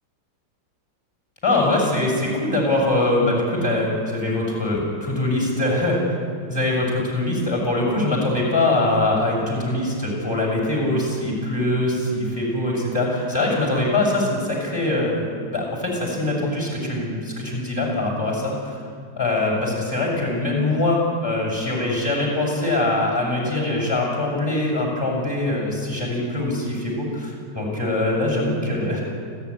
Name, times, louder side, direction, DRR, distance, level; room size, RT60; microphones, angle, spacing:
voice 1, 1.4-6.2 6.5-18.8 19.2-29.0, left 2 dB, 10° left, -1 dB, 7.1 m, -23 dB
30.0 x 15.0 x 9.9 m, 2.3 s
omnidirectional pair, 2.0 m